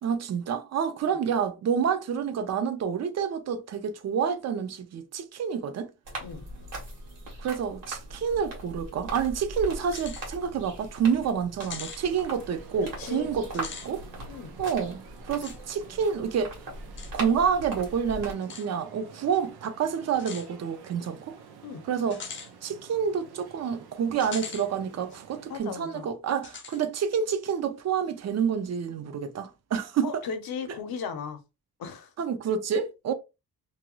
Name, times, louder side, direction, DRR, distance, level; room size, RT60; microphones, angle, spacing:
voice 1, 0.0-5.9 7.4-14.0 14.6-16.5 17.1-21.2 21.9-22.2 22.6-30.1 32.2-33.1, right 7 dB, 45° right, 0.4 m, -28 dB
sound 1, 6.0-18.3, right 1 dB, 65° right, 1.2 m, -40 dB
sound 2, 9.8-10.3 10.7-10.8 11.6-12.0 13.5-13.9 15.4-15.6 17.0-17.1 18.4-18.7 20.2-20.5 22.1-22.5 24.2-24.7 25.1-25.2 26.4-26.8, left 6 dB, 35° left, 0.4 m, -40 dB
sound 3, 12.0-25.6, right 6 dB, 85° right, 0.7 m, -50 dB
voice 2, 13.0-13.3 14.3-14.5 21.6-21.9 25.5-26.1 30.0-31.4 31.8-32.1, left 6 dB, 70° left, 0.7 m, -36 dB
2.6 x 2.2 x 3.0 m
wide cardioid pair, 180°, 37 cm